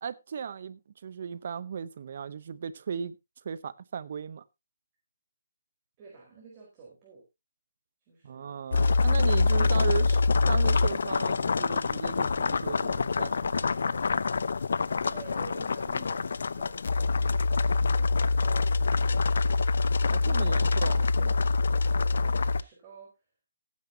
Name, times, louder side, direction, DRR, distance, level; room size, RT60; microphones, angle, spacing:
voice 1, 0.0-3.2 3.4-4.4 8.2-10.2 10.5-13.7 20.1-21.1, right 7 dB, 50° right, 0.8 m, -36 dB
voice 2, 6.0-7.2 8.1-8.5 15.0-19.2 20.4-23.1, right 4 dB, 25° right, 4.4 m, -50 dB
sound 1, 8.7-22.6, left 4 dB, 65° left, 0.7 m, -25 dB
17.5 x 9.4 x 2.8 m
hypercardioid pair, 160°, 0 cm